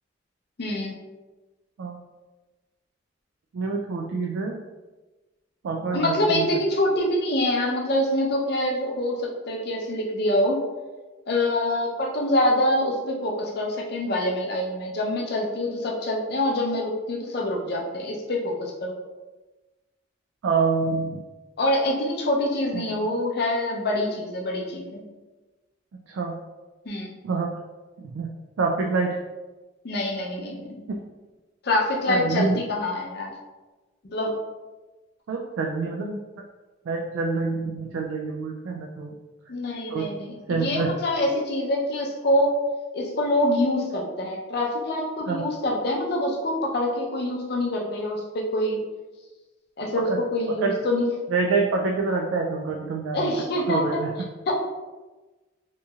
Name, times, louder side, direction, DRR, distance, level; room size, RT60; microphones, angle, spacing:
voice 1, 0.6-0.9 5.9-10.6 11.3-19.0 21.6-25.0 26.9-27.1 29.8-30.8 31.6-33.3 34.1-34.4 39.5-42.5 42.9-48.8 49.8-51.1 53.1-54.0 54.5-54.6, left 1 dB, 55° left, -1 dB, 0.5 m, -25 dB
voice 2, 3.5-4.6 5.6-6.5 20.4-21.2 22.7-23.1 26.1-26.4 27.2-27.5 28.0-28.3 28.6-29.2 30.9-31.0 32.1-32.6 35.3-36.2 36.9-39.1 39.9-40.1 40.5-40.9 45.3-45.5 50.1-50.2 50.6-50.7 51.3-53.3 53.7-54.3, right 4 dB, 85° right, 0 dB, 0.3 m, -26 dB
2.9 x 2.7 x 2.3 m, 1.2 s
head